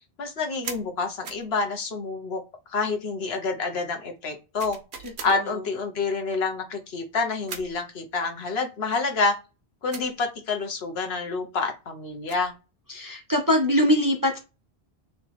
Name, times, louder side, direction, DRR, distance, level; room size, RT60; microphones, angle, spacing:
voice 1, 0.2-2.4 2.7-4.8 5.2-9.3 9.8-12.5, left 4 dB, 75° left, 1.1 m, -28 dB
sound 1, 0.6-0.9 1.2-1.5 4.6-5.4 7.5-7.8 9.9-10.1 12.0-12.5, right 6 dB, 85° right, 1.0 m, -39 dB
voice 2, 5.2-5.6 12.9-14.4, equal, 25° right, 0.4 m, -23 dB
3.3 x 2.9 x 4.1 m
omnidirectional pair, 1.1 m